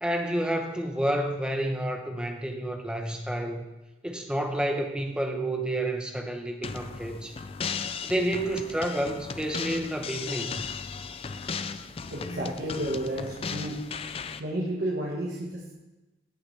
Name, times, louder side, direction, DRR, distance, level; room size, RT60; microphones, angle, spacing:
voice 1, 0.0-3.6 4.0-7.4 8.0-10.6, right 1 dB, 5° right, 3 dB, 0.9 m, -30 dB
sound 1, 6.6-14.4, left 5 dB, 30° left, 0.4 m, -36 dB
voice 2, 12.1-13.8 14.4-15.7, right 1 dB, 60° right, -3 dB, 1.5 m, -31 dB
15.5 x 5.8 x 3.4 m, 1.1 s
head